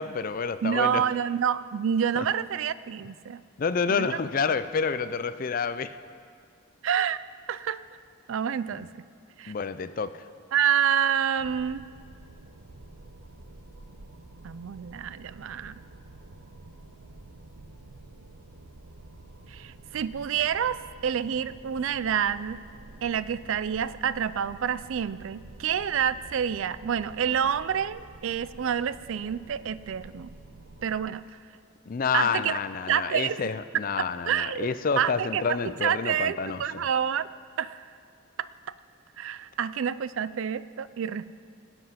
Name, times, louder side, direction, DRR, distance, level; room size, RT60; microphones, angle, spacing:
voice 1, 0.0-1.1 3.6-5.9 8.7-8.8 9.5-10.2 31.9-36.9, left 5 dB, 40° left, 13 dB, 0.4 m, -29 dB
voice 2, 0.6-3.4 3.9-4.1 6.8-7.2 7.5-7.8 8.3-8.9 9.4-9.5 10.5-11.9 14.4-15.7 19.5-22.6 23.0-30.3 30.8-31.4 32.1-32.6 32.9-33.5 34.0-34.7 35.0-37.3 37.6-37.8 38.4-38.5 39.2-41.3, right 8 dB, 65° right, 16 dB, 0.4 m, -28 dB
sound 1, 11.4-31.1, right 2 dB, 85° right, 0.8 m, -49 dB
17.5 x 7.9 x 5.7 m, 2.3 s
head